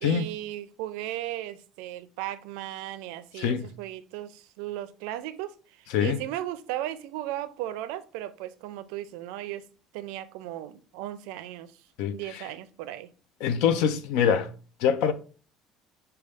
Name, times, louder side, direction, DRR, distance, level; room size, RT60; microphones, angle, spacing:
voice 1, 0.0-9.7 9.9-11.7 12.1-13.1, right 13 dB, 90° right, 0.4 m, -36 dB
voice 2, 3.4-3.7 5.9-6.2 12.0-12.4 13.4-14.5 14.8-15.1, left 8 dB, 80° left, 0.5 m, -24 dB
6.4 x 2.2 x 3.4 m
cardioid pair, 140°, 0 cm